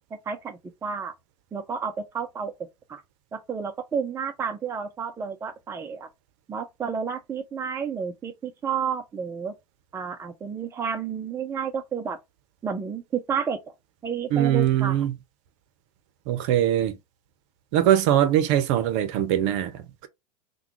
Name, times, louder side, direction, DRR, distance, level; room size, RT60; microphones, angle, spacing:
voice 1, 0.3-1.1 1.5-2.5 2.9-3.0 3.3-6.1 6.5-9.5 9.9-12.2 12.6-13.6 14.0-15.0, right 6 dB, 15° right, 0.5 m, -31 dB
voice 2, 14.3-15.1 16.3-17.0 17.7-20.1, right 11 dB, 50° right, 0.7 m, -22 dB
3.5 x 2.2 x 3.0 m
figure-of-eight pair, 95°, 19 cm